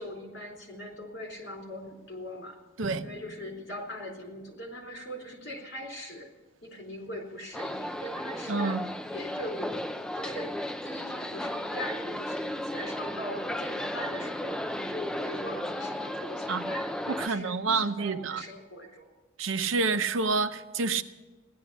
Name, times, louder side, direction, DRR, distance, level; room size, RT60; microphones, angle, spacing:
voice 1, 0.0-2.6 3.0-6.3 6.6-8.8 9.1-9.8 10.1-19.1, equal, 60° left, 4.1 m, -41 dB
Drum, 2.8-4.8, right 1 dB, 40° right, 1.0 m, -47 dB
sound 1, 7.5-17.3, left 1 dB, 5° left, 0.4 m, -34 dB
voice 2, 8.5-8.9 16.5-16.7 17.1-18.4 19.4-21.0, right 4 dB, 80° right, 0.8 m, -28 dB
16.5 x 11.5 x 7.1 m
head